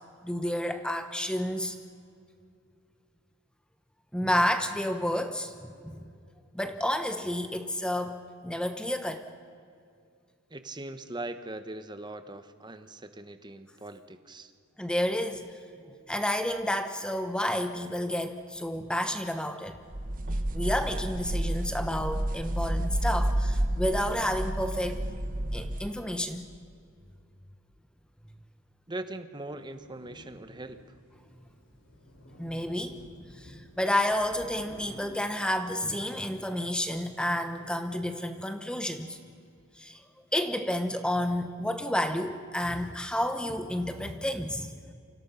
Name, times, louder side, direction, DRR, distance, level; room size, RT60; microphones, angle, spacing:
voice 1, 0.2-1.8 4.1-6.0 6.5-9.2 14.8-15.5 16.1-19.8 20.5-25.0 25.5-26.5 32.4-33.0 33.3-39.2 39.8-40.0 40.3-44.7, left 1 dB, 5° left, 8 dB, 1.1 m, -30 dB
voice 2, 10.5-14.5 28.9-30.8, right 2 dB, 20° right, 10 dB, 1.2 m, -40 dB
sound 1, 19.9-25.9, right 1 dB, 40° right, 1.2 m, -30 dB
sound 2, 29.5-35.0, equal, 60° left, 5.0 m, -53 dB
29.0 x 25.5 x 5.8 m, 2.3 s
head